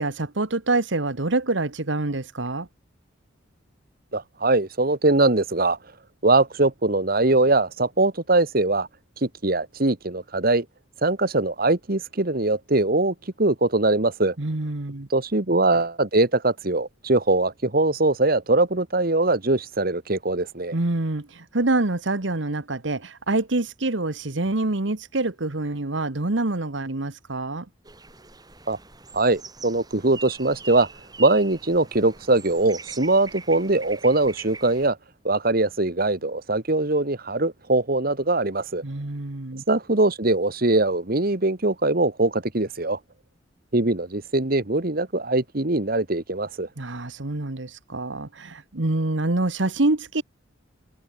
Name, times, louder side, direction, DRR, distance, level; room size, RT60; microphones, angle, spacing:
voice 1, 0.0-2.7 14.4-15.1 20.7-27.7 38.8-39.6 46.8-50.2, right 2 dB, 70° right, 1.5 m, -26 dB
voice 2, 4.1-5.8 6.2-8.9 9.2-10.6 11.0-14.3 15.1-20.7 28.7-28.8 29.1-30.9 31.2-35.0 35.2-38.8 39.7-43.0 43.7-46.7, right 2 dB, 50° right, 1.7 m, -22 dB
sound 1, 27.9-34.9, right 4 dB, 20° right, 7.3 m, -43 dB
head